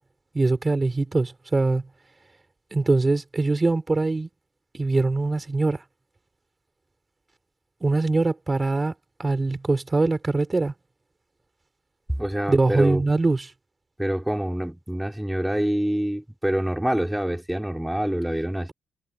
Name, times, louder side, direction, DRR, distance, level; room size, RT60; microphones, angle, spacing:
voice 1, 0.3-1.9 2.7-4.3 4.7-5.8 7.8-8.9 9.2-10.7 12.5-13.5, right 3 dB, 25° right, 6.1 m, -22 dB
voice 2, 12.2-13.0 14.0-18.7, right 1 dB, 5° right, 5.3 m, -26 dB
cardioid pair, 95°, 0 cm